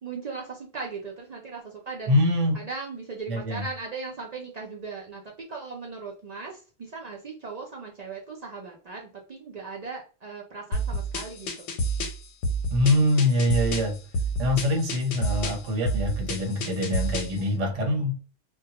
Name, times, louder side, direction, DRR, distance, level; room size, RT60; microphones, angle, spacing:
voice 1, 0.0-2.2 2.5-11.7, right 4 dB, 65° right, -1 dB, 0.4 m, -38 dB
voice 2, 2.1-2.6 3.3-3.6 12.7-14.0 14.4-18.2, left 1 dB, 80° right, 2 dB, 1.1 m, -24 dB
sound 1, 10.7-17.4, right 1 dB, 85° left, 0.9 m, -29 dB
2.2 x 2.1 x 2.8 m, 0.37 s
omnidirectional pair, 1.2 m